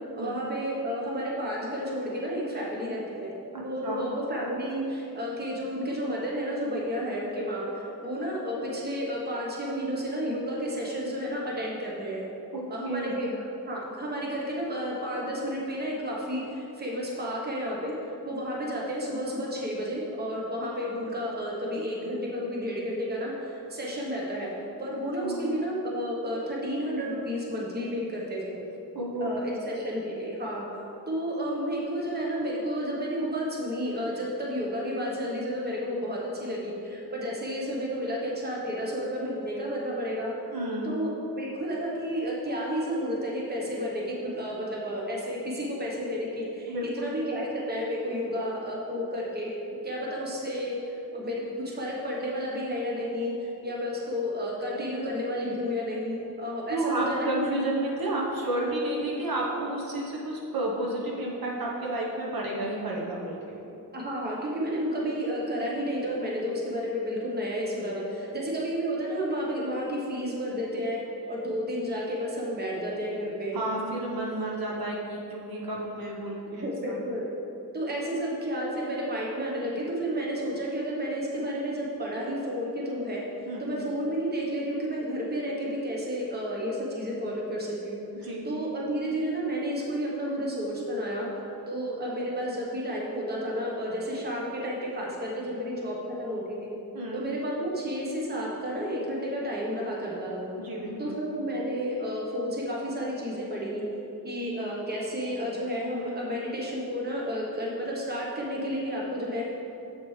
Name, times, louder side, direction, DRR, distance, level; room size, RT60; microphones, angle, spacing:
voice 1, 0.1-3.3 3.6-12.2 12.7-17.9 18.2-24.5 24.8-28.6 29.2-30.6 31.1-40.3 40.8-41.1 41.4-57.5 63.9-71.0 71.3-73.6 76.5-77.2 77.7-83.2 83.6-91.3 91.7-96.7 97.1-100.5 101.0-103.8 104.2-109.6, equal, 25° right, -3 dB, 1.1 m, -31 dB
voice 2, 3.5-4.1 12.5-13.2 25.2-25.4 28.9-29.4 40.5-40.9 46.7-47.1 56.7-63.6 73.5-77.0 83.5-83.7 88.2-88.5 96.9-97.3 100.6-101.2, right 1 dB, 65° right, -3 dB, 1.1 m, -31 dB
7.7 x 6.0 x 3.3 m, 2.8 s
wide cardioid pair, 125°, 38 cm